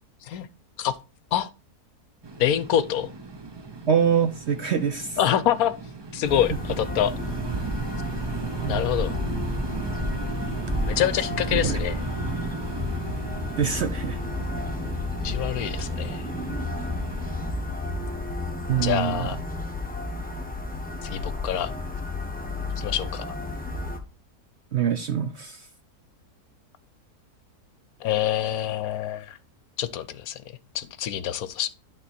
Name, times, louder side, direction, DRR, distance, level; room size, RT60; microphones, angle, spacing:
sound 1, 2.2-17.5, right 3 dB, 45° right, 0.3 m, -34 dB
voice 1, 2.4-3.1 5.2-5.7 6.1-7.1 8.6-9.1 10.9-12.0 15.2-16.3 18.8-19.4 21.0-21.7 22.8-23.3 28.0-29.4 29.8-30.4 30.7-31.7, left 10 dB, 75° left, 1.1 m, -26 dB
voice 2, 3.9-5.2 6.5-6.6 8.6-8.9 11.5-11.8 13.6-14.2 18.7-19.3 24.7-25.7, right 8 dB, 60° right, 0.7 m, -25 dB
sound 2, 6.2-24.0, left 2 dB, 5° left, 1.0 m, -32 dB
11.0 x 3.7 x 4.3 m
omnidirectional pair, 1.7 m